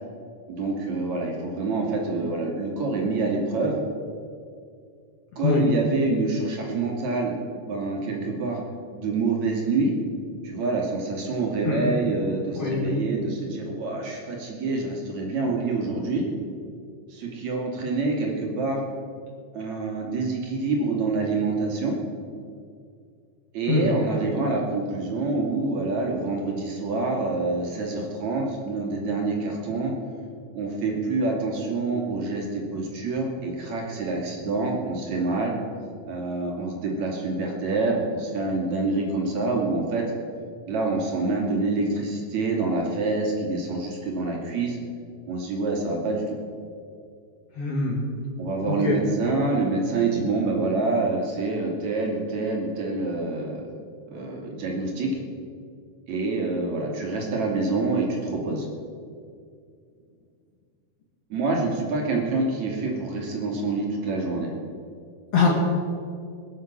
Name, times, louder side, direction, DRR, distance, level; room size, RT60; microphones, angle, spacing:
voice 1, 0.5-3.8 5.4-7.3 7.7-8.6 8.9-10.0 10.4-16.3 17.1-18.8 19.5-22.0 23.5-29.9 30.5-35.5 36.1-40.1 40.7-44.8 45.3-46.4 48.4-53.7 54.1-55.1 56.1-58.7 61.3-64.5, right 3 dB, 65° right, 0 dB, 3.8 m, -26 dB
voice 2, 12.6-13.0 23.7-23.9 47.6-48.0 48.7-49.0 65.3-65.5, left 4 dB, 50° left, -3 dB, 2.7 m, -23 dB
21.5 x 7.8 x 7.4 m, 2.3 s
omnidirectional pair, 3.4 m